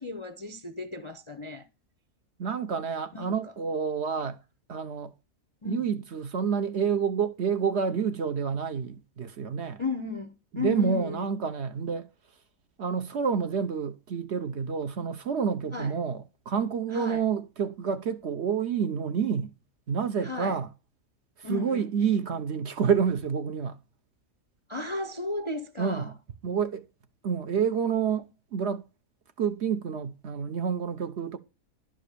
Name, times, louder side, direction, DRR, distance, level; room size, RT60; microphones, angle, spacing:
voice 1, 0.0-1.7 3.1-3.3 5.6-5.9 9.8-11.2 15.7-15.9 16.9-17.2 20.2-20.6 21.4-21.9 24.7-26.1, left 3 dB, 35° left, 0.5 m, -34 dB
voice 2, 2.4-4.4 4.7-5.1 5.6-9.8 10.5-12.1 12.8-19.5 19.9-20.7 21.4-23.8 25.8-26.2 26.4-26.8 27.2-28.8 29.4-31.4, right 6 dB, 55° right, 0.9 m, -28 dB
11.5 x 5.2 x 6.7 m
omnidirectional pair, 1.5 m